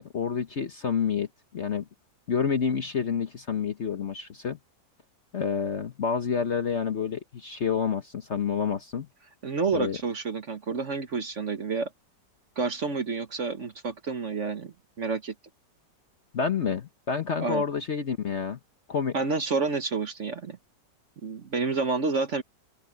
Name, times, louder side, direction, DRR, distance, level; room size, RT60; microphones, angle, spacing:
voice 1, 0.0-1.9 2.3-4.6 5.3-9.1 9.7-10.0 16.3-18.6 18.9-19.2, left 6 dB, 45° left, 1.1 m, -28 dB
voice 2, 9.4-11.9 12.6-15.3 17.4-17.6 19.1-20.6 21.2-22.4, right 4 dB, 45° right, 1.4 m, -29 dB
open air
omnidirectional pair, 2.0 m